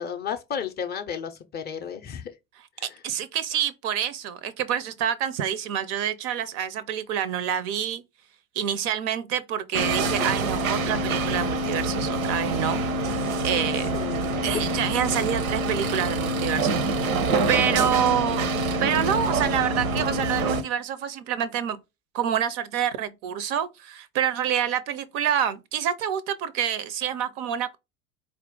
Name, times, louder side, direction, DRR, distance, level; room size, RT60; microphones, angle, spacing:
voice 1, 0.0-2.3 2.8-3.0 13.8-14.6, left 7 dB, 25° left, 0.4 m, -33 dB
voice 2, 3.0-8.0 8.6-13.9 14.4-17.1 17.5-18.5 18.8-21.8 22.1-27.8, right 9 dB, 40° right, 0.4 m, -27 dB
sound 1, 9.7-20.6, right 2 dB, 75° right, 0.7 m, -26 dB
4.2 x 2.5 x 3.6 m
figure-of-eight pair, 75°, 42 cm